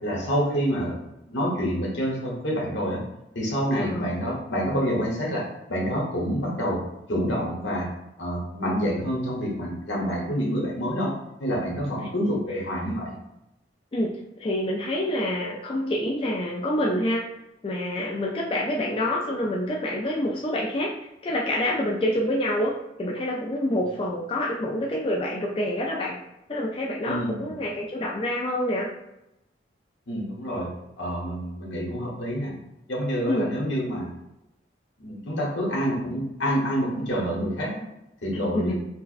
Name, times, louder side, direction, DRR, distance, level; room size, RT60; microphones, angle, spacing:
voice 1, 0.0-3.0 3.3-6.8 7.1-7.9 8.2-11.1 11.4-13.2 27.1-27.5 30.1-30.7 31.0-32.5 32.9-34.1 35.0-37.8 38.2-38.7, equal, 80° left, -3 dB, 1.1 m, -27 dB
voice 2, 3.8-4.1 12.0-12.1 12.4-12.7 13.9-14.1 14.4-17.3 17.6-20.9 21.2-22.7 23.0-26.2 26.5-28.9 33.3-33.5 38.3-38.7, left 1 dB, 30° left, -3 dB, 0.3 m, -27 dB
4.5 x 2.1 x 2.5 m, 0.89 s
head